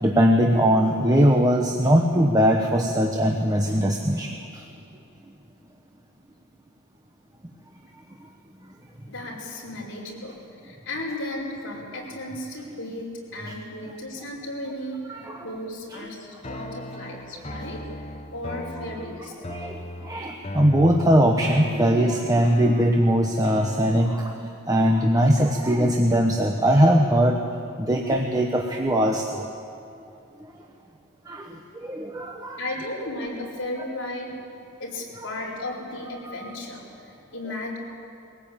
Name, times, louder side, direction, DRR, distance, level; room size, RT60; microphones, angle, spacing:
voice 1, 0.0-4.4 15.1-15.4 15.9-16.0 19.5-19.8 20.0-27.4 27.8-29.4 31.3-31.5 31.8-32.6, equal, 15° right, 2 dB, 1.1 m, -20 dB
voice 2, 9.1-10.4 10.6-18.0 18.3-19.3 32.6-34.4 34.8-37.8, left 1 dB, 55° left, -3 dB, 5.2 m, -35 dB
sound 1, 16.4-24.4, left 1 dB, 30° left, 1.1 m, -37 dB
22.5 x 17.5 x 8.9 m, 2.8 s
head